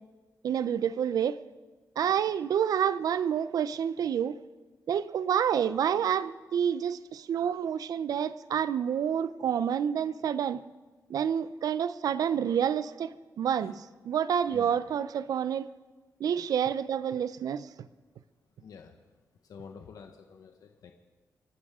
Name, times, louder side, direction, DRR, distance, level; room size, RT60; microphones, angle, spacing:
voice 1, 0.4-1.4 2.0-4.4 4.9-10.6 11.1-15.7 16.2-17.7, right 8 dB, 75° right, 0.6 m, -28 dB
voice 2, 18.6-19.0 19.4-20.9, left 6 dB, 70° left, 1.2 m, -48 dB
29.0 x 12.5 x 3.7 m
wide cardioid pair, 140°, 6 cm